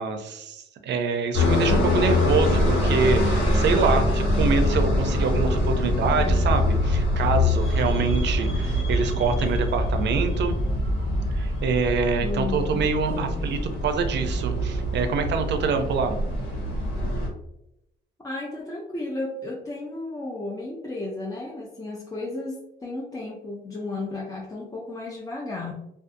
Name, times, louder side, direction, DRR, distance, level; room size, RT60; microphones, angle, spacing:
voice 1, 0.0-10.5 11.3-16.2, right 5 dB, 60° right, 7 dB, 0.5 m, -25 dB
sound 1, 1.3-17.3, left 2 dB, 90° left, 1.2 m, -25 dB
sound 2, 1.8-11.4, equal, 65° left, 0.9 m, -27 dB
voice 2, 12.2-13.5 18.2-25.7, left 2 dB, 15° left, -2 dB, 0.4 m, -33 dB
2.5 x 2.4 x 2.5 m, 0.82 s
cardioid pair, 90°, 20 cm